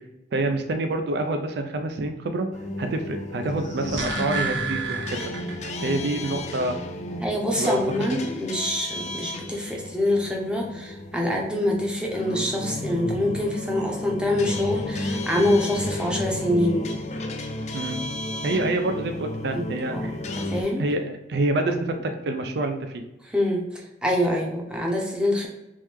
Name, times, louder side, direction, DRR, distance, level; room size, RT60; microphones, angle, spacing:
voice 1, 0.3-2.5 2.8-5.3 5.8-6.8 7.6-7.8 17.7-18.0 18.4-20.1 20.8-23.0, right 2 dB, 60° right, 6 dB, 0.4 m, -27 dB
sound 1, 2.5-20.6, left 1 dB, 35° left, 0.4 m, -33 dB
sound 2, 3.5-5.9 6.2-6.3, right 4 dB, 85° right, 0.8 m, -31 dB
voice 2, 7.2-16.9 19.5-19.6 19.9-20.1 20.4-20.8 21.9-22.0 23.2-25.5, left 1 dB, 5° right, -1 dB, 0.6 m, -25 dB
3.2 x 3.1 x 3.5 m, 0.96 s
head